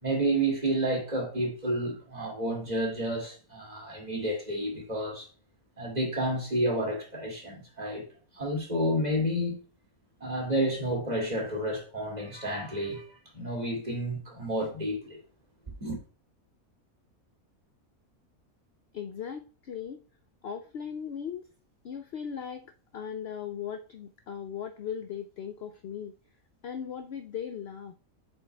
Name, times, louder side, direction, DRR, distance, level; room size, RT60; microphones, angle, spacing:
voice 1, 0.0-5.3 5.8-8.0 8.3-9.6 10.2-13.0 13.3-15.2 15.8-16.0, right 1 dB, 30° right, 2.5 m, -30 dB
voice 2, 18.9-20.0 20.4-21.5 21.8-26.1 26.6-27.9, left 8 dB, 65° left, 0.7 m, -38 dB
8.2 x 5.6 x 2.3 m
omnidirectional pair, 1.5 m